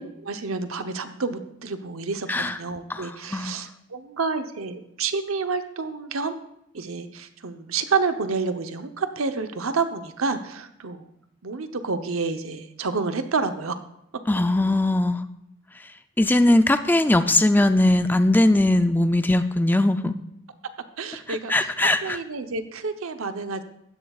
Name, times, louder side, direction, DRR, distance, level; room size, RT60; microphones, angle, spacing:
voice 1, 0.0-6.3 6.7-11.0 11.4-13.8 21.0-21.5 22.0-23.6, right 4 dB, 85° right, 8 dB, 0.9 m, -29 dB
voice 2, 2.9-3.6 14.3-15.2 15.8-15.9 16.2-20.2 21.3-22.2, left 1 dB, 10° left, 10 dB, 0.4 m, -20 dB
15.0 x 11.0 x 2.4 m, 0.78 s
head